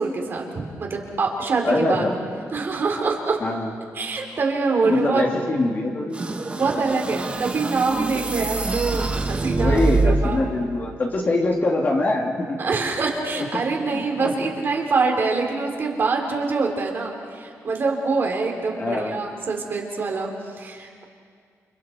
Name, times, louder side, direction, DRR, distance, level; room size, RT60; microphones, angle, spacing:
voice 1, 0.0-2.1 2.5-3.4 3.9-5.2 6.5-10.4 12.6-21.1, right 4 dB, 40° right, 0 dB, 3.6 m, -25 dB
voice 2, 1.6-2.1 3.4-3.7 4.8-6.2 9.6-12.6 13.5-13.6 13.9-14.3 18.7-19.1, left 2 dB, 35° left, 0 dB, 2.9 m, -23 dB
sound 1, 6.1-10.5, right 2 dB, 20° right, 1.3 m, -25 dB
29.5 x 29.5 x 4.6 m, 2.1 s
wide cardioid pair, 160°, 6 cm